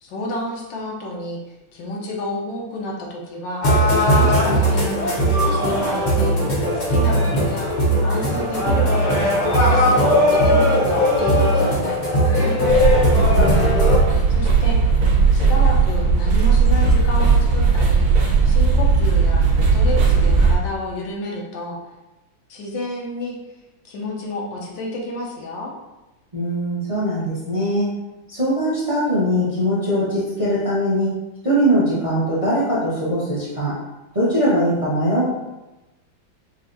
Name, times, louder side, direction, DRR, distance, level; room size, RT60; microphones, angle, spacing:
voice 1, 0.0-3.7 4.0-6.3 6.7-7.7 8.0-9.4 9.7-12.6 14.3-14.8 15.3-18.1 18.5-21.8 22.5-23.4 23.8-25.7, left 2 dB, 75° left, -1 dB, 1.4 m, -30 dB
sound 1, 3.6-14.0, equal, 50° left, 0.5 m, -18 dB
sound 2, 12.7-20.5, right 4 dB, 85° right, 1.6 m, -16 dB
voice 2, 13.2-13.7 26.3-27.8 28.3-31.1 31.4-33.7 34.1-35.3, equal, 25° right, -9 dB, 0.8 m, -21 dB
5.7 x 2.4 x 2.6 m, 1.0 s
omnidirectional pair, 2.1 m